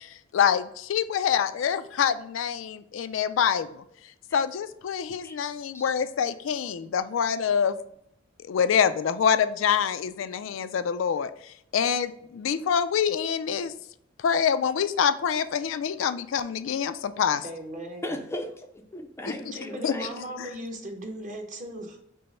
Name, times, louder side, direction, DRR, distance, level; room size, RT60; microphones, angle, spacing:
voice 1, 0.0-3.8 4.3-7.8 8.4-13.7 14.2-17.4 19.8-19.9, left 7 dB, 85° left, 12 dB, 0.3 m, -26 dB
voice 2, 17.4-18.2 19.5-22.0, equal, 40° right, 2 dB, 0.9 m, -38 dB
voice 3, 18.0-20.5, left 1 dB, 15° left, 5 dB, 0.4 m, -37 dB
5.4 x 2.1 x 4.2 m, 0.73 s
head